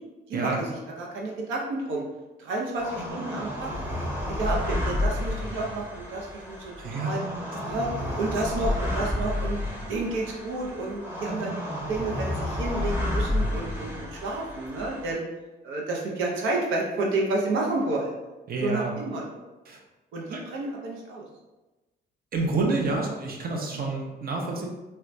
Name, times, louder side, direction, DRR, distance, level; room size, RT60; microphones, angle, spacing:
voice 1, 0.3-0.7 1.0-2.0 2.4-3.7 4.3-6.7 7.0-7.2 7.6-7.9 8.2-9.6 9.9-15.2 15.6-18.1 18.6-19.4 20.1-21.3, right 2 dB, 85° right, -2 dB, 0.6 m, -30 dB
sound 1, 2.7-15.1, left 1 dB, 10° right, 0.9 m, -31 dB
voice 2, 6.8-7.1 18.5-18.9 19.7-19.8 20.3-20.4 22.3-24.7, right 3 dB, 50° right, 0 dB, 0.7 m, -28 dB
4.2 x 2.2 x 2.5 m, 1.1 s
cardioid pair, 90°, 20 cm